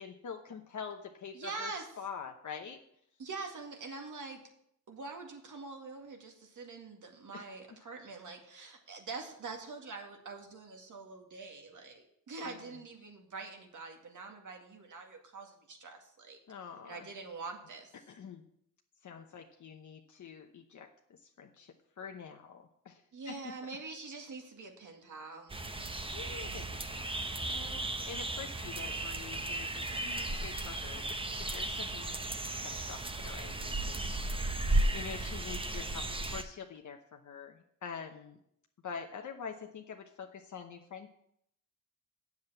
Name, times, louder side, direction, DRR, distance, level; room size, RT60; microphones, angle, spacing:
voice 1, 0.0-2.8 7.3-7.5 12.4-12.7 16.5-17.1 18.1-18.5 19.0-23.5 26.1-27.1 27.4-31.2 31.5-32.1 32.6-34.1 34.9-38.4 38.8-41.1, left 6 dB, 60° left, 3 dB, 0.9 m, -46 dB
voice 2, 1.3-1.9 3.2-4.4 4.9-16.4 16.8-18.0 23.1-25.6, right 4 dB, 65° right, 2 dB, 2.2 m, -44 dB
sound 1, 25.5-36.4, right 2 dB, 15° right, 0.8 m, -35 dB
8.0 x 7.3 x 7.8 m, 0.73 s
cardioid pair, 95°, 33 cm